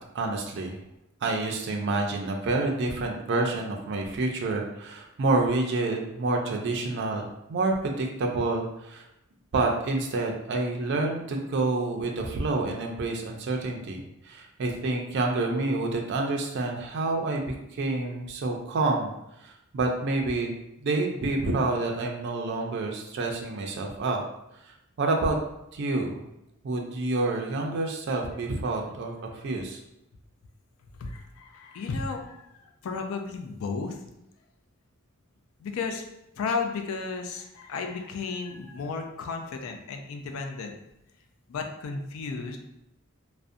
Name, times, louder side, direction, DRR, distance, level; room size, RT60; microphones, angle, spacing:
voice 1, 0.1-0.8 1.2-9.1 9.5-17.5 17.7-19.1 19.4-20.5 20.8-24.2 25.0-25.4 25.7-26.2 26.6-29.8, right 2 dB, 55° right, 1 dB, 0.4 m, -28 dB
voice 2, 31.0-32.5 32.8-34.0 35.6-36.0 36.4-40.7 41.5-42.6, left 4 dB, 70° left, 4 dB, 0.3 m, -33 dB
2.4 x 2.1 x 2.5 m, 0.86 s
head